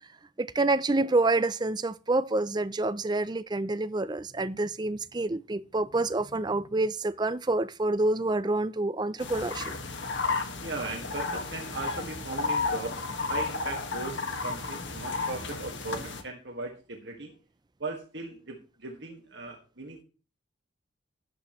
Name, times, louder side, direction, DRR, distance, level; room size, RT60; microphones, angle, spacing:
voice 1, 0.4-9.7, right 2 dB, 20° right, 0.5 m, -27 dB
sound 1, 9.2-16.2, left 3 dB, 70° left, 1.8 m, -33 dB
voice 2, 10.6-17.3 17.8-20.0, right 3 dB, 65° right, 1.9 m, -38 dB
12.5 x 11.0 x 3.1 m
head